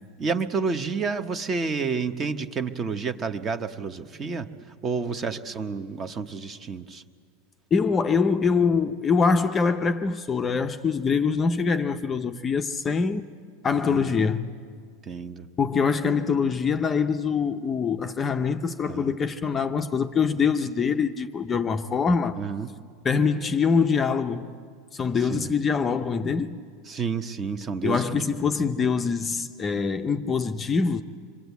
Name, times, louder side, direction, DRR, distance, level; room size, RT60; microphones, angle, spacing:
voice 1, 0.2-7.0 13.8-14.3 15.0-15.5 18.9-19.1 22.4-22.7 25.3-25.5 26.8-28.6, right 5 dB, 20° right, 0.9 m, -30 dB
voice 2, 7.7-13.3 13.6-14.5 15.6-22.4 23.0-24.6 24.9-26.6 27.8-31.0, left 5 dB, 15° left, 0.6 m, -24 dB
27.0 x 23.0 x 8.2 m
supercardioid pair, 160°, 0 cm